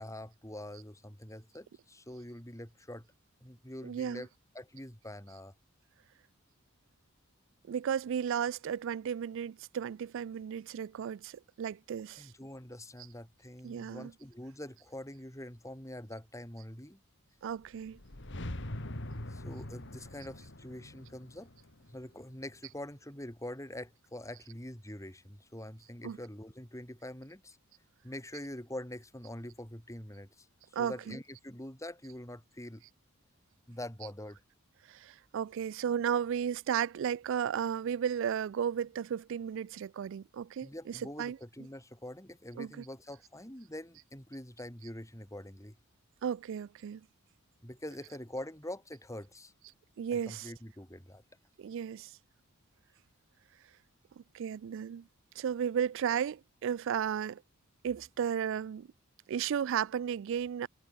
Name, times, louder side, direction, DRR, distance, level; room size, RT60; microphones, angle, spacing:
voice 1, 0.0-3.1 3.4-4.3 4.5-5.5 12.2-17.0 19.3-21.5 21.9-27.6 28.0-30.5 30.8-32.8 33.7-34.4 40.6-45.8 47.6-49.5 50.1-51.2, left 1 dB, 15° left, 5.1 m, -45 dB
voice 2, 3.8-4.3 7.7-12.3 13.6-14.1 17.4-18.0 26.0-26.2 30.7-31.2 34.9-41.7 42.5-42.8 46.2-47.1 50.0-50.5 51.6-52.1 54.2-55.1 55.4-57.4 57.8-58.9 59.3-60.7, right 8 dB, 60° right, 0.3 m, -34 dB
sound 1, 17.6-22.7, left 1 dB, 55° left, 2.5 m, -43 dB
head